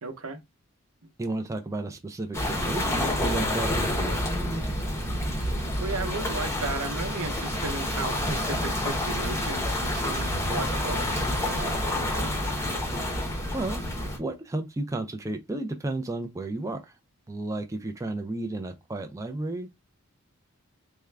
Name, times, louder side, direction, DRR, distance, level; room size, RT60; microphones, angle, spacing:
voice 1, 0.0-0.4 5.8-12.8, right 3 dB, 85° right, 0.8 m, -36 dB
voice 2, 1.2-4.8 13.5-13.8 14.2-16.9 17.3-19.7, right 2 dB, 15° right, 0.3 m, -33 dB
sound 1, 2.3-14.2, left 1 dB, 10° left, 0.7 m, -28 dB
3.5 x 2.2 x 3.3 m
head